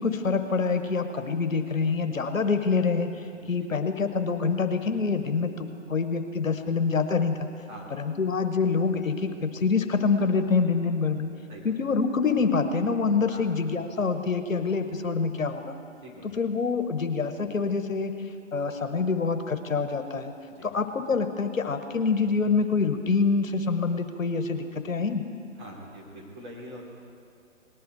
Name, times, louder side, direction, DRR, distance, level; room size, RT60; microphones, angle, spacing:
voice 1, 0.0-3.1 3.5-7.5 7.9-11.3 11.6-15.7 16.3-18.1 18.5-20.3 20.6-25.2, left 4 dB, 80° left, 8 dB, 1.1 m, -26 dB
voice 2, 25.6-26.8, equal, 35° right, -3 dB, 3.0 m, -43 dB
19.0 x 10.5 x 4.5 m, 2.4 s
figure-of-eight pair, 140°, 40 cm